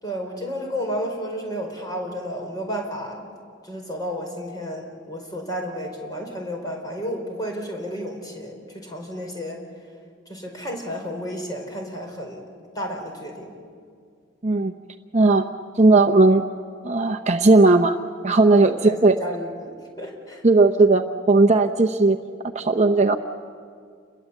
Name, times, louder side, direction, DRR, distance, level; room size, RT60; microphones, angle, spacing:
voice 1, 0.0-3.2 3.6-9.6 10.3-12.4 12.7-13.5 18.6-20.4, equal, 20° left, 1 dB, 4.9 m, -32 dB
voice 2, 14.4-14.7 15.1-15.5 15.8-16.4 16.8-18.0 18.2-19.2 20.4-22.2 22.5-23.2, right 3 dB, 35° right, 6 dB, 0.8 m, -16 dB
29.0 x 22.0 x 8.4 m, 2.2 s
head